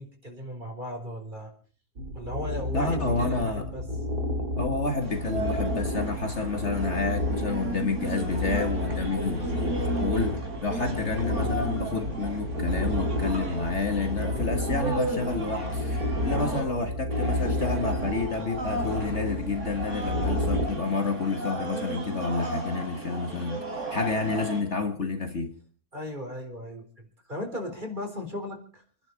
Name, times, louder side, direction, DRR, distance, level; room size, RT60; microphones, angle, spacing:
voice 1, 0.0-1.5 2.1-3.8 16.2-16.9 25.9-28.8, left 1 dB, 30° right, 4.3 m, -37 dB
sound 1, 2.0-20.7, left 1 dB, 70° right, 2.9 m, -31 dB
voice 2, 2.7-3.7 4.5-23.6 23.9-25.5, left 4 dB, 45° left, 1.7 m, -29 dB
sound 2, 5.0-16.6 17.1-24.6, right 2 dB, 50° right, 4.5 m, -35 dB
28.0 x 11.0 x 4.7 m
omnidirectional pair, 1.7 m